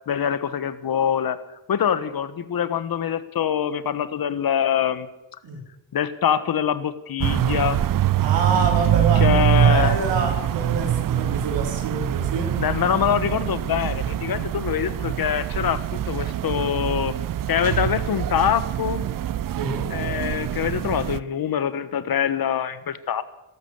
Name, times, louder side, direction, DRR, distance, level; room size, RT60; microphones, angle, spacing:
voice 1, 0.1-1.4 1.7-5.1 5.9-7.8 9.1-10.0 12.6-17.1 17.5-19.0 19.9-23.2, left 8 dB, 55° left, 14 dB, 1.5 m, -24 dB
sound 1, 7.2-21.2, right 11 dB, 50° right, 0.7 m, -24 dB
voice 2, 8.2-12.5 19.5-19.9, right 4 dB, 75° right, 1 dB, 5.1 m, -27 dB
13.5 x 12.5 x 8.1 m, 0.94 s
supercardioid pair, 70°, 43 cm